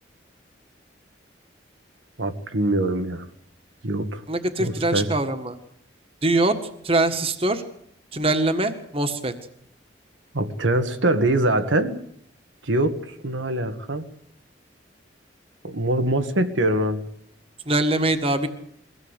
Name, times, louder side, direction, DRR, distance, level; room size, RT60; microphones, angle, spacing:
voice 1, 2.2-3.3 3.8-4.2 4.6-5.1 10.3-12.0 12.6-14.1 15.6-17.0, right 1 dB, 90° right, 7 dB, 1.9 m, -23 dB
voice 2, 4.3-5.6 6.2-6.6 6.8-7.6 8.1-9.3 17.7-18.5, right 2 dB, 30° right, 8 dB, 1.7 m, -22 dB
23.5 x 17.0 x 8.2 m, 0.70 s
head